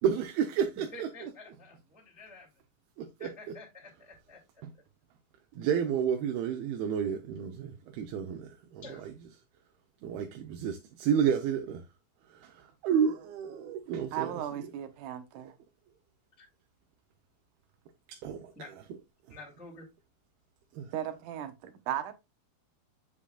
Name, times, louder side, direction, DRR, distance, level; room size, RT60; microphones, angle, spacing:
voice 1, 0.0-1.3 3.0-3.3 5.6-9.1 10.0-11.8 12.3-14.7 18.1-18.5 20.7-20.9, right 8 dB, 85° right, 2.7 m, -31 dB
voice 2, 0.7-2.5 3.2-4.4 8.8-9.1 16.4-16.5 18.5-18.7 19.3-19.9, left 2 dB, 5° right, 1.6 m, -49 dB
voice 3, 14.1-15.5 20.9-22.1, right 10 dB, 70° right, 2.2 m, -36 dB
7.5 x 6.9 x 2.3 m
omnidirectional pair, 4.3 m